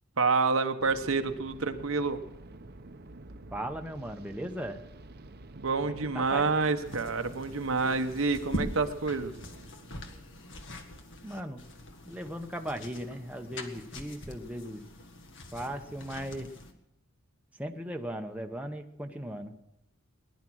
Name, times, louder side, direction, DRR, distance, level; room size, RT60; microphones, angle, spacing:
voice 1, 0.2-2.2 5.6-9.3, right 4 dB, 70° right, 7 dB, 1.1 m, -28 dB
sound 1, 0.8-11.6, right 2 dB, 50° right, 0.9 m, -49 dB
voice 2, 3.5-4.8 5.8-6.5 11.2-11.6 12.1-14.8 15.5-16.5 17.5-19.6, equal, 5° right, 4 dB, 1.0 m, -38 dB
sound 2, 6.8-16.7, left 1 dB, 60° left, 1.8 m, -43 dB
20.0 x 11.0 x 6.3 m, 0.84 s
head